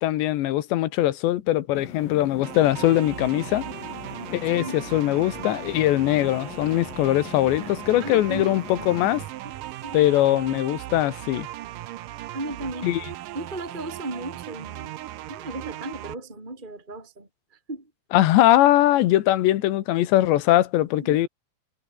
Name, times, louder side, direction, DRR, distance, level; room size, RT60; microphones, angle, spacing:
voice 1, 0.0-3.7 4.3-9.2 9.9-11.5 12.8-13.0 18.1-21.3, left 14 dB, 85° left, 3.5 m, -21 dB
sound 1, 1.7-9.3, left 9 dB, 55° left, 3.9 m, -41 dB
sound 2, 2.4-16.1, right 14 dB, 70° right, 2.1 m, -38 dB
voice 2, 4.5-5.0 7.6-7.7 8.0-8.6 9.4-9.6 9.8-10.1 12.3-12.9 13.3-15.0 15.3-17.9 21.0-21.3, right 2 dB, 10° right, 3.9 m, -36 dB
omnidirectional pair, 5.1 m